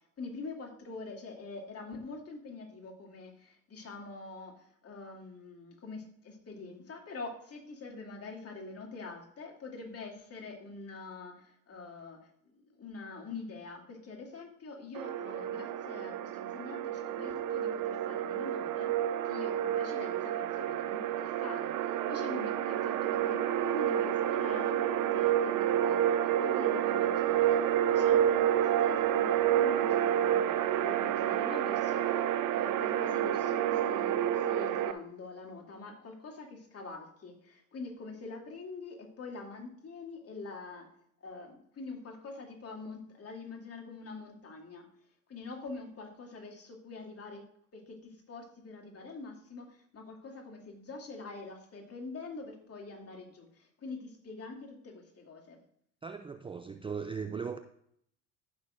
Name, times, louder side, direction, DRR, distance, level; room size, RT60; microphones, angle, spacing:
voice 1, 0.2-12.2 12.5-18.9 19.2-40.9 41.2-44.9 45.3-47.4 47.7-55.6, left 3 dB, 35° left, 1 dB, 2.7 m, -45 dB
sound 1, 14.9-34.9, right 11 dB, 50° right, 0.8 m, -29 dB
voice 2, 56.0-57.6, right 5 dB, 15° right, 7 dB, 0.5 m, -38 dB
14.5 x 6.4 x 2.5 m, 0.68 s
hypercardioid pair, 65°, 40 cm